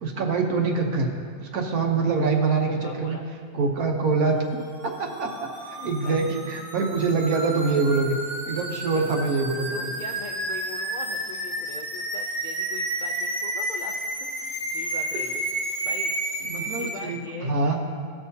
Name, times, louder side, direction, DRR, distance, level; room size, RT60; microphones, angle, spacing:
voice 1, 0.0-1.1 1.4-3.2 3.5-4.4 4.8-8.1 8.4-9.9 16.5-17.8, right 4 dB, 80° right, 1 dB, 1.4 m, -25 dB
voice 2, 2.7-3.2 5.7-6.2 8.5-9.0 9.7-15.4 15.8-16.1 16.4-17.7, left 4 dB, 80° left, 1 dB, 0.4 m, -41 dB
sound 1, 4.7-16.9, right 1 dB, 55° right, 2.3 m, -31 dB
16.0 x 6.0 x 2.8 m, 2.1 s
omnidirectional pair, 1.5 m